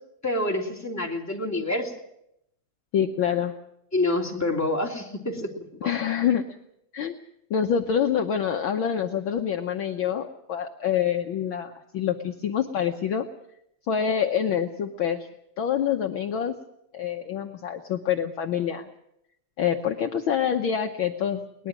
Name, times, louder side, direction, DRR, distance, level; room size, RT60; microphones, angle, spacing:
voice 1, 0.2-1.9 3.9-5.5 5.8-5.9, left 2 dB, 5° left, -1 dB, 2.5 m, -27 dB
voice 2, 2.9-3.5 5.8-6.4 6.9-7.2 7.5-13.3 13.9-15.3 15.6-16.5 16.9-18.9 19.6-21.7, left 8 dB, 70° left, 4 dB, 1.2 m, -26 dB
22.0 x 20.0 x 6.1 m, 0.77 s
omnidirectional pair, 3.3 m